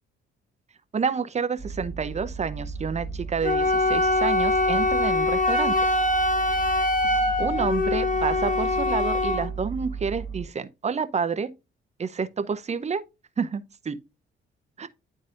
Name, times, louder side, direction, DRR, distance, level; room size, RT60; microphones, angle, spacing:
voice 1, 0.9-5.7 7.4-11.5 12.0-13.0 13.4-14.0 14.8-14.9, right 5 dB, 35° right, 0.8 m, -29 dB
sound 1, 1.6-10.4, right 5 dB, 25° left, 2.1 m, -36 dB
Wind instrument woodwind instrument, 3.4-9.5, left 2 dB, 40° left, 1.3 m, -23 dB
11.0 x 4.0 x 2.5 m
cardioid pair, 90°, 20 cm